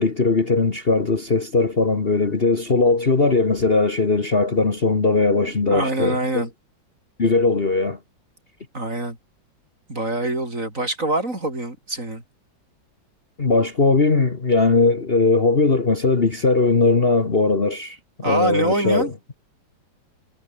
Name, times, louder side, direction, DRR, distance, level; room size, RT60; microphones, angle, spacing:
voice 1, 0.0-6.5 7.2-8.0 13.4-18.0 18.2-19.1, left 3 dB, 30° left, 1.7 m, -19 dB
voice 2, 5.4-6.5 8.7-9.2 9.9-12.2 18.2-19.1, right 2 dB, 40° right, 7.2 m, -25 dB
omnidirectional pair, 2.1 m